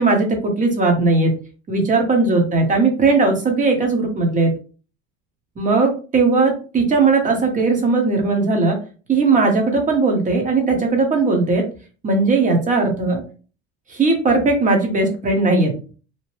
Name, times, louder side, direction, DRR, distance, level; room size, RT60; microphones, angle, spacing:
voice 1, 0.0-1.3 1.7-4.5 5.6-8.8 9.1-11.6 12.0-13.2 13.9-15.7, right 3 dB, 25° right, 3 dB, 0.9 m, -18 dB
2.8 x 2.0 x 3.1 m, 0.37 s
supercardioid pair, 120°, 33 cm